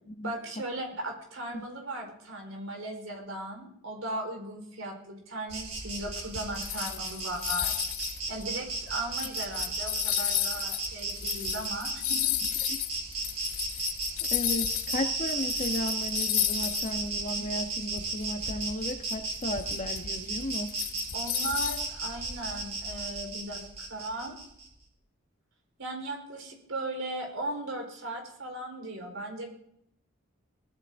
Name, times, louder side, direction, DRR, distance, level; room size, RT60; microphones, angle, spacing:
voice 1, 0.2-7.9 8.3-12.3 21.1-24.4 25.8-29.5, right 1 dB, 75° right, 2 dB, 4.5 m, -37 dB
Insect, 5.5-24.7, right 3 dB, 30° right, 3.3 m, -35 dB
sound 1, 6.3-15.0 15.3-17.0 17.3-17.4 18.0-21.9, left 13 dB, 80° left, 1.0 m, -33 dB
voice 2, 14.3-20.8, left 1 dB, 35° left, 5 dB, 1.3 m, -34 dB
20.0 x 14.0 x 3.7 m, 0.71 s
head